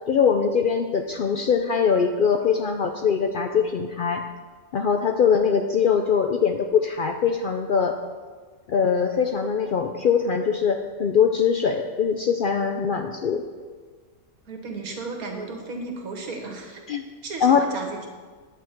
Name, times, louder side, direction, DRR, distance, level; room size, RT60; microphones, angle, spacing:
voice 1, 0.1-4.2 4.7-8.0 8.7-13.4 16.9-17.0 17.4-17.6, left 6 dB, 90° left, 5 dB, 0.4 m, -22 dB
voice 2, 14.5-16.8 17.2-18.1, right 3 dB, 80° right, 2 dB, 1.8 m, -34 dB
9.4 x 7.9 x 4.5 m, 1.5 s
omnidirectional pair, 1.5 m